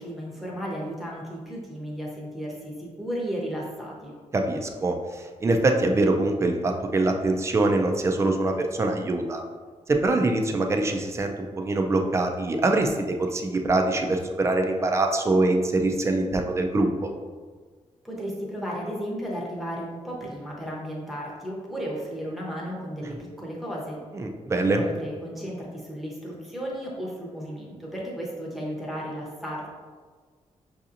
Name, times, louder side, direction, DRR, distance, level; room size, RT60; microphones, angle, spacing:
voice 1, 0.0-4.1 18.0-24.0 24.6-29.7, equal, ahead, -4 dB, 0.8 m, -34 dB
voice 2, 4.3-9.4 9.9-17.1 24.1-24.8, right 2 dB, 25° right, 3 dB, 0.3 m, -24 dB
6.1 x 2.8 x 2.5 m, 1.5 s
wide cardioid pair, 175°, 12 cm